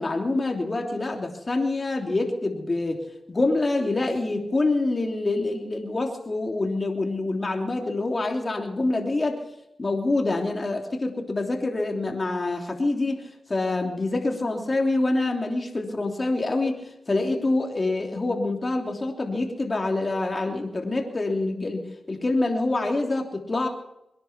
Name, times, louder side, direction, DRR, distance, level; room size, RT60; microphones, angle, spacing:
voice 1, 0.0-9.4 9.8-23.7, left 2 dB, 40° left, 2 dB, 3.2 m, -26 dB
23.0 x 10.5 x 6.0 m, 0.85 s
cardioid pair, 50°, 0 cm